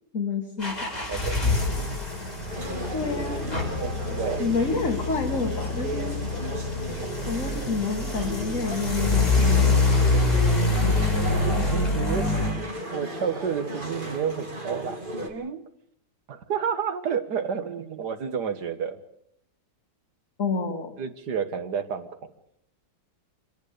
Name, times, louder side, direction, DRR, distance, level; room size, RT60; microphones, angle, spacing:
voice 1, 0.1-0.7 2.9-3.6 4.4-6.2 7.3-10.2 20.4-21.0, left 4 dB, 45° left, 2 dB, 2.5 m, -29 dB
sound 1, 0.6-12.5, left 3 dB, 20° left, 5.6 m, -25 dB
voice 2, 1.1-2.0 3.8-4.5 10.9-11.0 11.4-12.3 12.9-15.7 16.3-19.0 21.0-22.1, right 7 dB, 65° right, 9 dB, 2.1 m, -30 dB
sound 2, 2.5-15.3, right 1 dB, 30° right, 2.6 m, -36 dB
25.5 x 19.5 x 6.8 m, 0.68 s
omnidirectional pair, 1.9 m